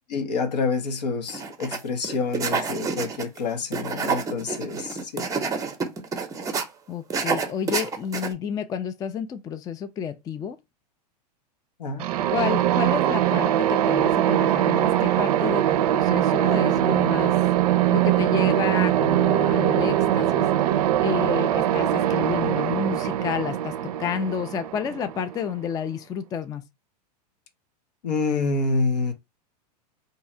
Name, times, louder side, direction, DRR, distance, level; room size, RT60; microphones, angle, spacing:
voice 1, 0.1-5.3 11.8-12.1 28.0-29.1, left 4 dB, 75° left, 0.9 m, -27 dB
sound 1, 1.3-1.8 2.0-3.4 3.7-6.6 7.1-8.3, right 5 dB, 15° right, 0.7 m, -28 dB
voice 2, 6.9-10.6 12.3-17.4 17.9-20.7 21.0-26.6, left 8 dB, 20° left, 0.3 m, -30 dB
sound 2, 12.0-25.7, right 12 dB, 60° right, 0.5 m, -22 dB
2.8 x 2.3 x 4.2 m
hypercardioid pair, 105°, 21 cm